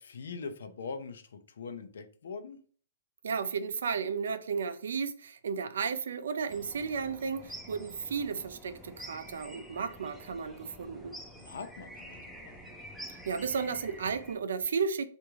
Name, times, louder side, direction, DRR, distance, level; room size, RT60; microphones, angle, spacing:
voice 1, 0.0-2.6 11.4-12.6, left 5 dB, 75° left, 0.6 m, -42 dB
voice 2, 3.2-11.1 13.3-15.0, right 5 dB, 75° right, 0.4 m, -33 dB
sound 1, 6.5-14.3, equal, ahead, 0.5 m, -48 dB
3.5 x 2.5 x 3.0 m
hypercardioid pair, 155°, 0 cm